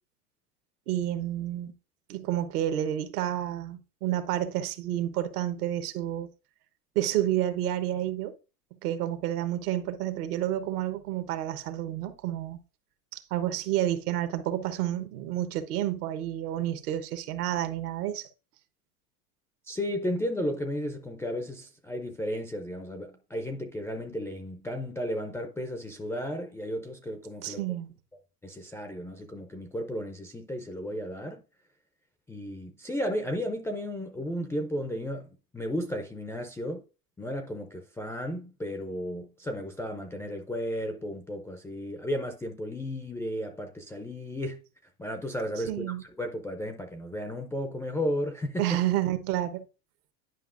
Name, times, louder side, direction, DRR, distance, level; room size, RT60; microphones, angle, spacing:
voice 1, 0.9-1.7 2.1-6.3 6.9-8.3 8.8-12.6 13.1-18.3 27.4-27.9 45.6-46.0 48.6-49.6, right 12 dB, 75° right, 1.1 m, -30 dB
voice 2, 19.7-27.6 28.4-31.4 32.3-36.8 37.2-44.6 45.0-48.8, equal, 5° left, 0.3 m, -34 dB
10.0 x 5.1 x 2.5 m
supercardioid pair, 115°, 46 cm